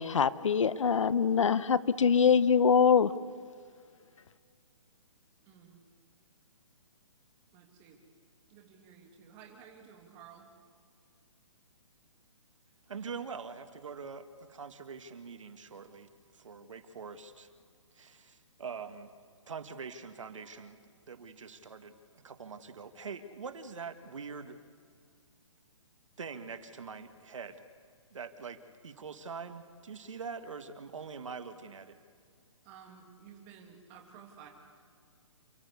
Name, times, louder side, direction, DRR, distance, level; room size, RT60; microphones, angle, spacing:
voice 1, 0.0-3.1, left 6 dB, 70° left, 16 dB, 0.9 m, -24 dB
voice 2, 5.4-5.8 7.5-8.0 8.5-10.4 32.6-34.5, right 7 dB, 15° right, 1 dB, 2.1 m, -53 dB
voice 3, 12.9-17.5 17.9-19.1 19.5-20.8 21.1-24.6 26.2-27.6 28.1-32.0, right 5 dB, 75° right, 8 dB, 1.8 m, -44 dB
28.5 x 14.0 x 8.4 m, 2.1 s
hypercardioid pair, 175°, 16 cm